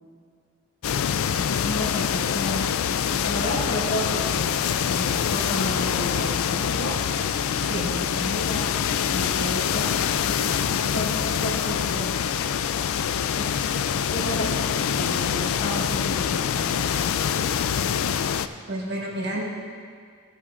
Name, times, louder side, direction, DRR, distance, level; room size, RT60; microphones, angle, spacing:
sound 1, 0.8-18.5, left 8 dB, 75° left, 0.3 m, -25 dB
voice 1, 1.6-2.7 3.1-4.5 4.8-6.9 7.8-8.7 9.1-10.0 10.3-10.4 10.6-12.1 13.3-13.5 14.1-14.5 14.9-16.9, left 1 dB, 60° left, -7 dB, 2.5 m, -32 dB
voice 2, 18.7-19.4, right 1 dB, 50° right, -4 dB, 1.6 m, -30 dB
16.5 x 8.0 x 2.5 m, 2.1 s
head